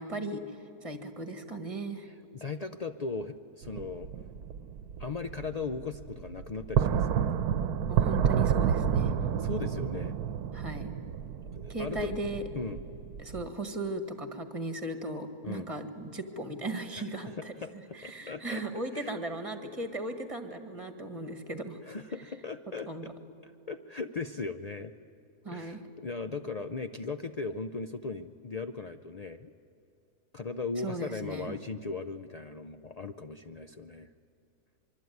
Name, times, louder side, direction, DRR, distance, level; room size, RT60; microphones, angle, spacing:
voice 1, 0.0-2.1 7.9-9.1 10.5-10.9 11.7-12.4 13.2-17.5 17.9-21.8 22.9-23.1 25.4-25.8 30.8-31.6, right 2 dB, 20° right, 7 dB, 1.7 m, -37 dB
voice 2, 2.0-4.1 5.0-7.4 9.4-10.2 11.5-12.2 12.5-12.8 15.4-15.7 17.4-18.6 18.9-19.1 21.8-23.1 23.4-24.9 25.5-29.5 30.3-34.1, left 4 dB, 75° left, 8 dB, 0.3 m, -38 dB
sound 1, 3.6-13.5, right 8 dB, 75° right, 1.3 m, -30 dB
24.5 x 23.5 x 9.4 m, 2.6 s
omnidirectional pair, 1.7 m